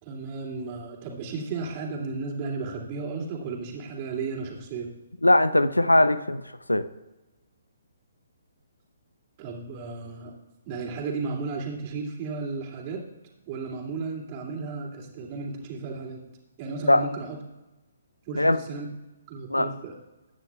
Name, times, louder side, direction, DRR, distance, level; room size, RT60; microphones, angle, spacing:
voice 1, 0.0-4.9 9.4-10.3 10.7-13.0 13.5-16.2 16.6-17.4 18.3-18.9 19.3-19.9, right 4 dB, 30° right, -1 dB, 2.5 m, -34 dB
voice 2, 5.2-6.4 6.7-6.9 16.9-17.1 18.4-18.6 19.5-19.7, left 1 dB, 85° left, 13 dB, 0.7 m, -20 dB
22.5 x 9.7 x 2.4 m, 1.1 s
figure-of-eight pair, 130°, 0 cm